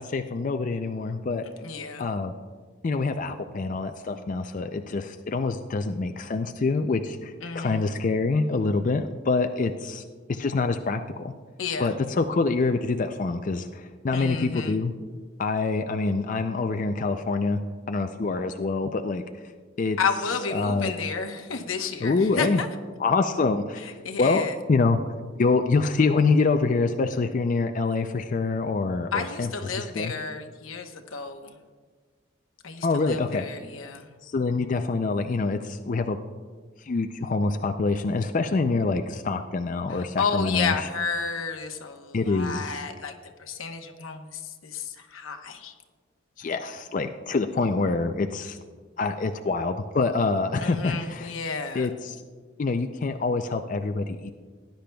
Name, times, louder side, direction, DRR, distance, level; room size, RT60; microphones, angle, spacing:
voice 1, 0.0-1.4 2.0-2.3 2.8-10.0 10.3-11.3 11.8-14.9 15.4-17.6 17.9-19.2 19.8-20.0 20.5-20.9 22.0-22.6 23.0-25.0 25.4-29.5 29.7-30.1 32.8-33.5 34.2-36.2 36.8-40.9 42.1-42.8 46.4-48.6 49.0-51.3 51.7-52.2 52.6-54.3, left 3 dB, 40° left, 6 dB, 0.4 m, -26 dB
voice 2, 1.6-2.1 7.4-7.8 11.6-11.9 14.1-14.8 20.0-22.7 24.0-24.5 29.1-31.6 32.6-34.1 39.9-43.1 43.4-45.7 50.6-51.9, left 5 dB, 90° left, 4 dB, 1.0 m, -31 dB
18.5 x 10.5 x 2.3 m, 1.5 s
head